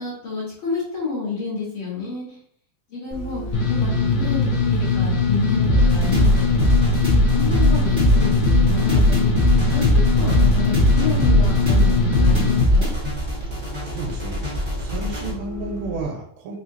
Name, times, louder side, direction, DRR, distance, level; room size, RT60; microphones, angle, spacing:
voice 1, 0.0-2.4 2.9-3.4 3.7-6.4 7.3-9.3 9.7-9.8 10.2-12.9, left 4 dB, 55° left, -6 dB, 1.5 m, -29 dB
Bus, 3.1-16.0, right 1 dB, 25° left, 1.1 m, -34 dB
sound 1, 3.5-12.6, left 4 dB, 85° left, 1.2 m, -21 dB
sound 2, 5.7-15.3, left 1 dB, 60° right, 0.4 m, -20 dB
voice 2, 13.8-14.4 14.8-16.6, right 3 dB, 90° right, -1 dB, 2.3 m, -31 dB
5.0 x 2.8 x 2.7 m, 0.62 s
omnidirectional pair, 3.8 m